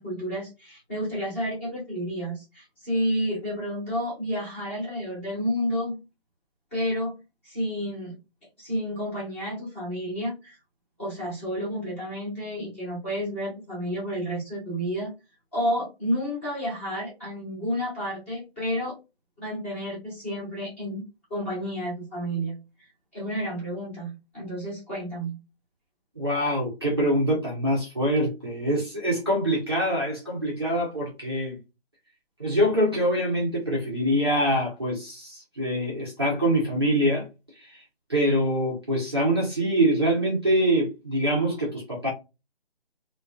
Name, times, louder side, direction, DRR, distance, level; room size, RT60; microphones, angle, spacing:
voice 1, 0.0-6.0 6.7-7.2 7.4-8.1 8.6-10.6 11.0-15.1 15.5-18.9 19.4-25.3, equal, 10° left, 0.8 m, -30 dB
voice 2, 26.2-31.6 32.4-37.3 37.6-37.8 38.1-42.1, equal, 25° right, 0.5 m, -24 dB
2.4 x 2.2 x 2.3 m
figure-of-eight pair, 155°, 33 cm